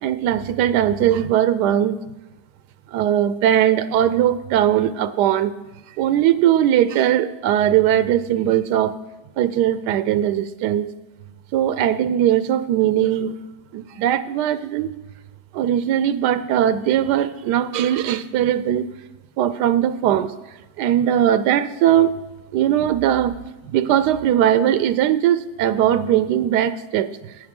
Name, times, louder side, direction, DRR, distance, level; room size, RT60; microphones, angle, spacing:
voice 1, 0.0-2.0 2.9-5.5 6.0-9.0 9.4-10.9 11.5-13.4 13.7-14.9 15.5-18.9 19.4-20.4 20.8-22.2 22.5-23.4 23.7-27.3, right 11 dB, 85° right, 13 dB, 1.2 m, -19 dB
12.0 x 8.7 x 3.7 m, 1.1 s
omnidirectional pair, 1.7 m